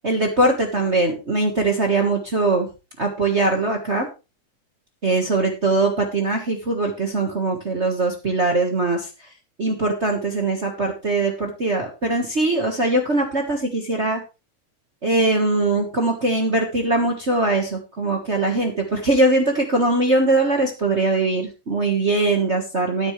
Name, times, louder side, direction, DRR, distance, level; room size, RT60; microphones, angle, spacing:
voice 1, 0.0-2.7 3.0-4.1 5.0-9.1 9.6-14.2 15.0-23.1, right 2 dB, 65° right, 2 dB, 0.6 m, -21 dB
12.5 x 9.6 x 3.2 m, 0.29 s
omnidirectional pair, 3.8 m